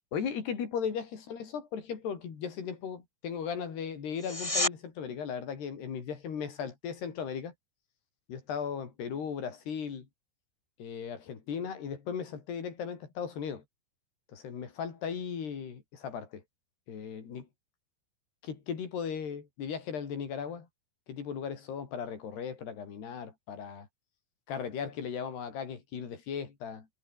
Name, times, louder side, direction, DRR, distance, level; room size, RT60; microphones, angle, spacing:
voice 1, 0.1-7.5 8.3-10.1 10.8-13.6 14.3-16.4 16.9-17.5 18.4-20.7 21.1-23.9 24.5-26.9, left 7 dB, 60° left, 6.0 m, -37 dB
sound 1, 4.1-4.8 16.1-16.2, left 1 dB, 10° left, 2.0 m, -30 dB
omnidirectional pair, 5.3 m